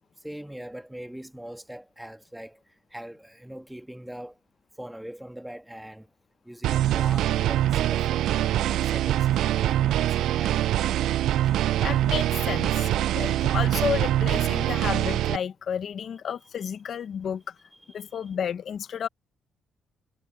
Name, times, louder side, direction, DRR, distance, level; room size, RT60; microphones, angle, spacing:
voice 1, 0.2-2.6 2.9-4.3 4.8-6.1 6.4-8.5 8.9-10.6 18.0-18.1, right 1 dB, 5° right, 1.7 m, -41 dB
sound 1, 6.6-15.4, right 13 dB, 80° right, 0.3 m, -24 dB
voice 2, 11.8-12.9 13.1-17.5 17.9-19.1, left 8 dB, 60° left, 0.7 m, -31 dB
cardioid pair, 90°, 0 cm